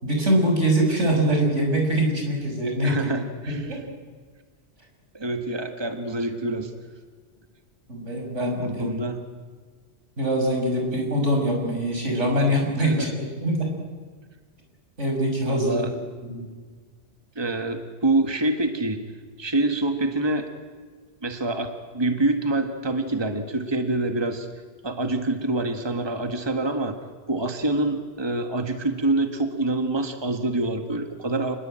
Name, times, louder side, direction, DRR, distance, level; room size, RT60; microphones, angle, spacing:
voice 1, 0.0-3.1 3.5-3.8 7.9-8.9 10.2-13.7 15.0-15.8 16.2-16.4, right 1 dB, 90° right, 1 dB, 6.3 m, -23 dB
voice 2, 2.8-3.8 5.1-6.7 8.6-9.2 12.8-13.1 15.5-15.9 17.4-19.0 19.4-20.5 21.2-24.5 24.8-27.0 27.3-31.6, right 2 dB, 20° right, 7 dB, 1.7 m, -26 dB
27.5 x 21.0 x 9.0 m, 1.5 s
omnidirectional pair, 1.2 m